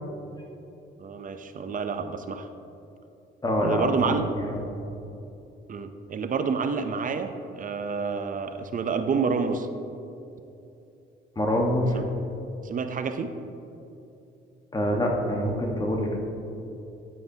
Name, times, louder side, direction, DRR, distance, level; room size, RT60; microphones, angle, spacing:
voice 1, 1.0-2.5 3.6-4.3 5.7-9.7 11.9-12.0 12.6-13.3, right 5 dB, 40° right, 8 dB, 0.6 m, -28 dB
voice 2, 3.4-4.2 11.3-12.0 14.7-16.2, equal, 20° left, 0 dB, 1.4 m, -25 dB
9.4 x 9.2 x 2.8 m, 2.8 s
cardioid pair, 90°, 20 cm